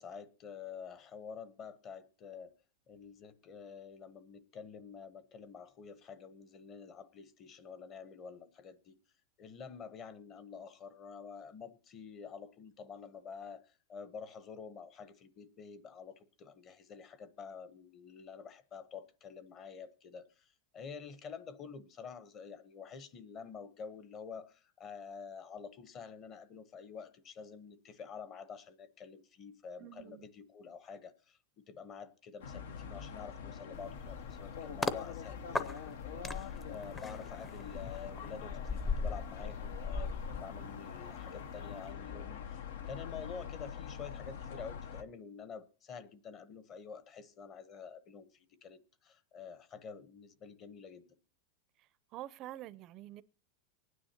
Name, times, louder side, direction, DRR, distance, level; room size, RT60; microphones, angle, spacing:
voice 1, 0.0-2.5 2.9-8.9 9.4-31.4 31.7-40.1 40.4-51.1, left 6 dB, 35° left, 1.0 m, -48 dB
voice 2, 29.8-30.3 51.8-53.2, right 14 dB, 40° right, 0.5 m, -47 dB
sound 1, 32.4-45.0, left 7 dB, 85° left, 0.8 m, -44 dB
sound 2, 33.7-35.0 35.5-41.1 41.4-41.7, left 3 dB, 15° left, 0.6 m, -39 dB
24.0 x 9.6 x 2.9 m
supercardioid pair, 140°, 0 cm